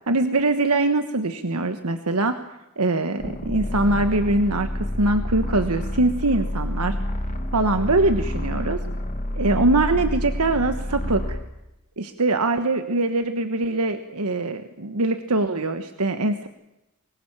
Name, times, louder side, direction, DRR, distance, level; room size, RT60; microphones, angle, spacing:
voice 1, 0.1-2.4 2.8-7.0 7.5-8.8 9.3-11.4 12.0-16.5, right 2 dB, 90° right, 8 dB, 1.4 m, -23 dB
sound 1, 3.2-11.4, left 1 dB, 35° left, 2.5 m, -28 dB
25.5 x 21.5 x 7.3 m, 0.94 s
head